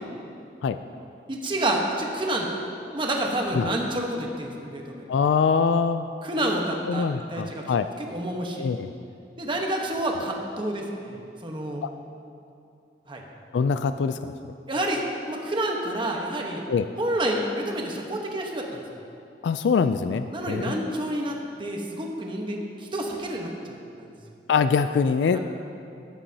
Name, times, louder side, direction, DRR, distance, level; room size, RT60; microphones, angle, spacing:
voice 1, 1.3-2.5 2.9-5.1 6.2-8.7 9.4-11.8 13.1-13.2 14.7-15.0 15.3-16.6 17.0-18.8 20.3-23.7 24.0-24.1 25.3-25.4, right 1 dB, 30° right, 0 dB, 1.1 m, -29 dB
voice 2, 5.1-6.1 6.9-7.9 8.6-8.9 13.5-14.2 16.7-16.9 19.4-20.8 24.5-25.4, left 5 dB, 75° left, 10 dB, 0.3 m, -23 dB
14.5 x 10.0 x 2.8 m, 2.6 s
head